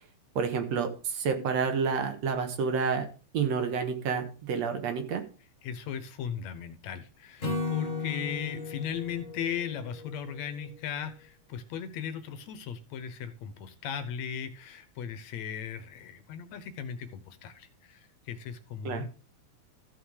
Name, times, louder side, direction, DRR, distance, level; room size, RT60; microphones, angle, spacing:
voice 1, 0.4-3.1 3.3-5.2 18.9-19.0, right 5 dB, 65° right, 6 dB, 2.4 m, -29 dB
voice 2, 5.6-19.1, left 8 dB, 70° left, 11 dB, 2.1 m, -37 dB
Acoustic guitar / Strum, 7.4-10.7, left 4 dB, 30° left, 2.2 m, -36 dB
14.0 x 5.8 x 4.9 m, 0.36 s
omnidirectional pair, 3.4 m